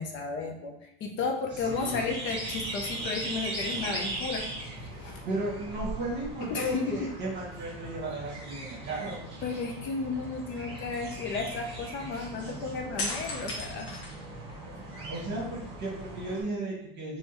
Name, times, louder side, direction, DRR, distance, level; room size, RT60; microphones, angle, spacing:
voice 1, 0.0-4.4 4.8-5.2 6.5-6.8 9.4-14.3 14.7-15.1, left 4 dB, 40° left, 3 dB, 0.5 m, -34 dB
voice 2, 1.5-2.1 5.2-9.2 15.1-17.2, right 1 dB, 35° right, -5 dB, 1.3 m, -34 dB
sound 1, 1.6-16.4, right 2 dB, 20° right, 1.1 m, -39 dB
sound 2, 2.9-3.2 3.6-4.4 5.6-6.9 7.2-7.3 13.0-14.8 15.3-16.2, left 1 dB, 80° left, 1.2 m, -39 dB
3.6 x 3.1 x 2.9 m, 0.76 s
cardioid pair, 155°, 30 cm